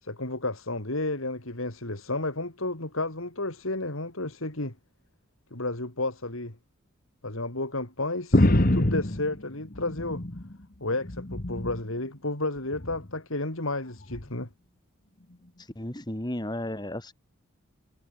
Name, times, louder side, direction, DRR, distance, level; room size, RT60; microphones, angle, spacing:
voice 1, 0.0-4.7 5.5-6.6 7.2-10.2 10.8-14.5, left 2 dB, 70° left, 3.7 m, -32 dB
sound 1, 8.3-10.6 10.9-11.9 12.7-13.1 14.1-14.3, left 1 dB, 40° left, 1.5 m, -25 dB
voice 2, 15.6-17.1, left 1 dB, 20° left, 1.7 m, -34 dB
head